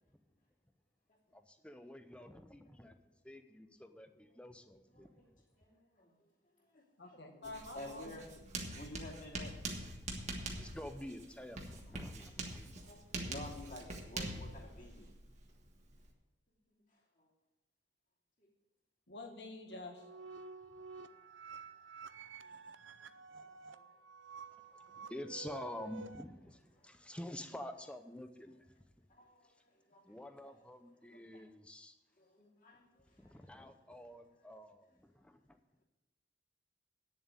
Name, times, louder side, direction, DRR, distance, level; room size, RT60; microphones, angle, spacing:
voice 1, 1.3-3.0 3.2-5.1 10.6-12.9 24.7-28.7 30.1-31.9 33.2-35.6, left 1 dB, 5° left, 8 dB, 0.7 m, -48 dB
voice 2, 3.6-4.4 4.9-5.3 5.6-6.2 6.6-7.2 7.7-8.2 8.6-9.6 10.2-11.0 11.6-12.0 12.8-15.1 16.7-17.3 18.4-18.5 22.2-22.6 23.0-23.9 25.0-25.1 29.1-30.2 30.4-30.5 31.1-31.5 32.2-33.7, left 1 dB, 45° left, -4 dB, 3.0 m, -54 dB
voice 3, 7.0-8.3 19.1-20.1, left 2 dB, 65° left, 4 dB, 1.8 m, -48 dB
Writing, 7.4-16.1, right 2 dB, 40° right, 1.5 m, -44 dB
sound 1, 19.7-26.2, right 4 dB, 85° right, 0.6 m, -51 dB
9.3 x 7.3 x 8.2 m, 1.0 s
head